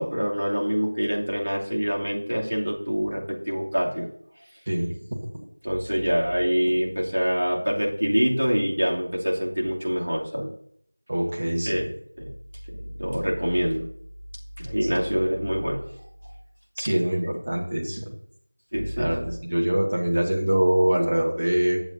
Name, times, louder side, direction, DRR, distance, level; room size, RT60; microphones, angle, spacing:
voice 1, 0.0-4.1 5.6-10.5 11.6-11.9 12.2-12.3 12.7-13.8 14.6-15.8 18.7-19.1, equal, 65° right, -3 dB, 2.7 m, -25 dB
voice 2, 11.1-11.8 14.8-15.0 16.8-18.1 19.0-21.8, right 1 dB, 20° right, -1 dB, 1.0 m, -24 dB
16.5 x 7.1 x 2.7 m, 0.66 s
figure-of-eight pair, 180°, 0 cm